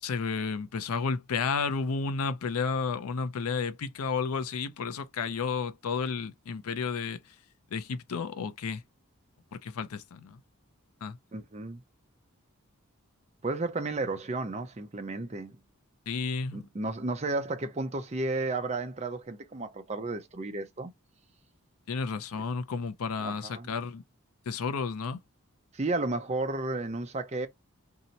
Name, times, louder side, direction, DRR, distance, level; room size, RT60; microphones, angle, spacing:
voice 1, 0.0-7.4 7.7-8.8 9.5-10.4 11.0-11.2 16.1-16.7 21.9-24.0 24.5-25.2, left 5 dB, 80° left, 0.5 m, -32 dB
voice 2, 11.3-11.8 13.4-15.6 16.5-20.9 22.3-22.4 23.2-23.7 25.7-27.5, right 2 dB, 30° right, 0.5 m, -33 dB
2.8 x 2.0 x 3.9 m
head